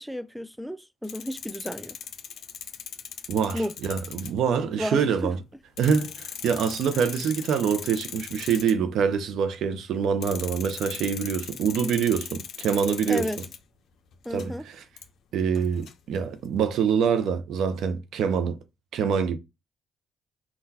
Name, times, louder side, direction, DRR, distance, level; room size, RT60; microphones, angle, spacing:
voice 1, 0.0-2.0 3.5-3.7 4.8-5.3 13.1-13.4 14.3-14.7, equal, ahead, 0.3 m, -32 dB
sound 1, 1.0-4.5 5.2-5.3 5.8-8.7 10.2-13.6 14.1-14.5 15.0-15.1 15.5-16.5, left 8 dB, 70° left, 0.4 m, -39 dB
voice 2, 3.3-5.4 5.8-13.3 14.3-14.8 15.3-18.6 18.9-19.4, right 7 dB, 80° right, 0.5 m, -25 dB
3.8 x 2.2 x 2.7 m
supercardioid pair, 65°, 0 cm